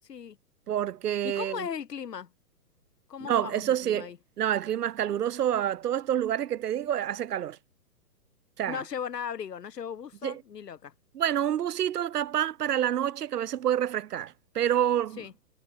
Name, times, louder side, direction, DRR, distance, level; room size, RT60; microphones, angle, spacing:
voice 1, 0.7-1.7 3.2-4.1 4.4-7.6 8.6-8.8 10.2-10.4 11.1-15.2, right 10 dB, 75° right, 1.0 m, -28 dB
voice 2, 1.2-2.3 3.1-4.2 8.7-10.9 15.2-15.3, left 8 dB, 90° left, 1.6 m, -37 dB
hypercardioid pair, 145°, 47 cm